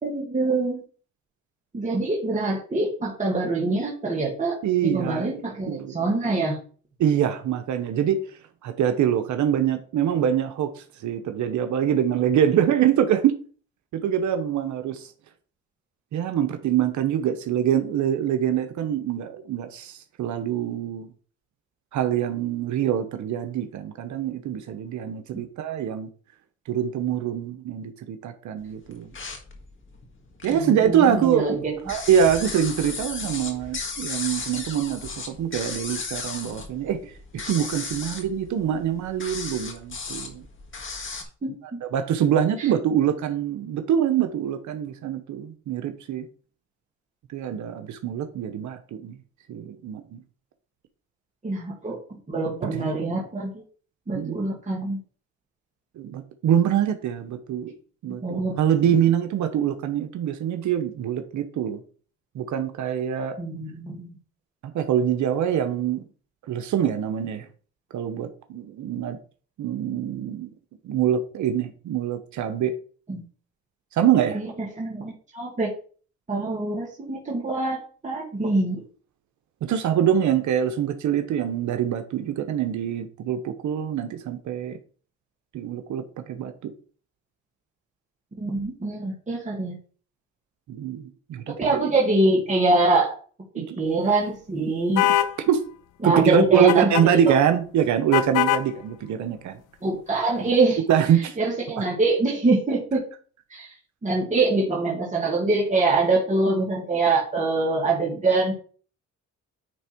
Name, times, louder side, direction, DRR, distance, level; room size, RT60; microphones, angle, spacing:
voice 1, 0.0-0.8 1.7-6.6 30.5-31.8 41.4-41.5 42.6-42.7 51.4-53.5 54.1-55.0 58.1-58.6 63.4-64.1 73.1-73.2 74.3-75.7 76.3-77.8 78.0-78.8 88.4-89.8 91.6-93.2 93.5-95.1 96.0-96.9 97.3-97.4 99.8-100.8 101.2-103.0 103.5-103.7 104.0-108.5, right 3 dB, 25° right, -3 dB, 2.2 m, -24 dB
voice 2, 4.6-5.3 5.7-6.0 7.0-8.2 8.6-10.7 11.0-13.3 14.0-15.1 16.1-21.1 21.9-26.1 26.7-29.1 30.4-31.5 31.9-37.0 37.5-40.4 41.9-46.3 47.3-49.1 49.5-50.2 52.7-52.9 54.1-54.4 56.0-57.7 58.0-61.8 62.3-63.4 64.7-66.0 66.5-67.5 67.9-69.2 69.6-70.5 70.8-72.7 73.9-74.4 79.6-84.8 85.5-86.7 90.7-91.5 93.6-93.8 95.5-95.6 96.0-99.6 100.9-101.4 101.8-101.9, right 9 dB, 70° right, 7 dB, 0.9 m, -24 dB
sound 1, 28.9-30.7 31.1-41.2, left 4 dB, 40° left, 1.8 m, -35 dB
sound 2, 95.0-95.3 96.7-97.1 98.1-98.7, left 12 dB, 90° left, 0.6 m, -21 dB
9.6 x 3.5 x 4.4 m, 0.42 s
cardioid pair, 90°, 30 cm